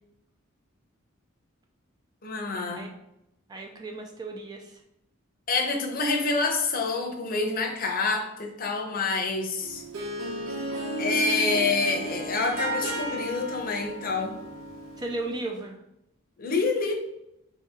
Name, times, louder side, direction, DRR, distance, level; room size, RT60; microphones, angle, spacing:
voice 1, 2.2-2.9 5.5-9.8 11.0-14.3 16.4-16.9, left 3 dB, 40° left, 2 dB, 0.7 m, -27 dB
voice 2, 3.5-4.8 15.0-15.8, right 2 dB, 20° right, 2 dB, 0.3 m, -35 dB
Harp, 9.6-15.4, right 1 dB, 85° right, 0.8 m, -34 dB
4.6 x 2.8 x 3.6 m, 0.84 s
head